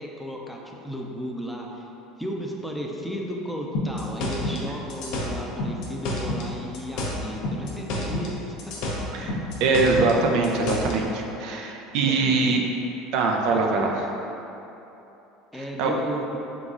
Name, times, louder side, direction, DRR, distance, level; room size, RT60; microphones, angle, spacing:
voice 1, 0.0-1.9 2.2-8.3 8.7-8.9 9.2-9.5 12.1-12.5 13.5-13.8 15.5-16.4, equal, 5° left, -1 dB, 0.5 m, -34 dB
sound 1, 3.7-6.5 6.7-8.3 8.6-11.0, left 1 dB, 65° left, 0.7 m, -29 dB
voice 2, 9.6-12.6 13.1-14.1 15.5-15.9, right 3 dB, 65° right, 1 dB, 0.4 m, -23 dB
3.9 x 3.7 x 2.4 m, 3.0 s
hypercardioid pair, 90°, 0 cm